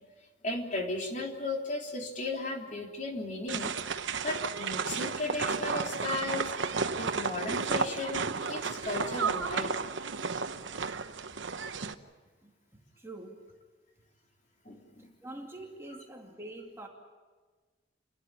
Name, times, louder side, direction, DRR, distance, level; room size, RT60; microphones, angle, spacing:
voice 1, 0.4-3.7 4.2-9.8 14.7-15.1, left 2 dB, 40° left, 0 dB, 3.5 m, -36 dB
sound 1, 3.5-11.9, right 5 dB, 75° right, 1.0 m, -33 dB
voice 2, 12.4-13.5 15.0-16.9, right 1 dB, 15° right, 0 dB, 2.4 m, -46 dB
29.0 x 13.0 x 10.0 m, 1.4 s
head